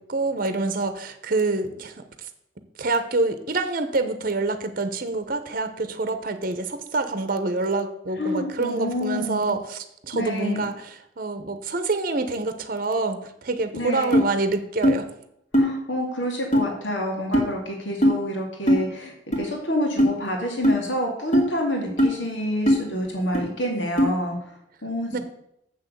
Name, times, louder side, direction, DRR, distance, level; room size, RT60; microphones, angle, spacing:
voice 1, 0.0-2.0 2.8-15.1 25.1-25.2, right 3 dB, 50° right, 9 dB, 0.9 m, -26 dB
voice 2, 8.2-9.6 10.1-10.7 13.7-14.2 15.6-24.4 24.8-25.2, equal, 75° left, 0 dB, 2.3 m, -28 dB
sound 1, 14.1-14.3 14.8-15.0 15.5-15.7 16.5-16.6 17.3-17.5 18.0-18.2 18.7-18.8 19.3-19.4 20.0-20.1 20.6-20.8 21.3-21.5 22.0-22.1 22.7-22.8 23.3-23.4 24.0-24.1, equal, 40° left, 2.1 m, -18 dB
7.4 x 6.1 x 7.8 m, 0.79 s
head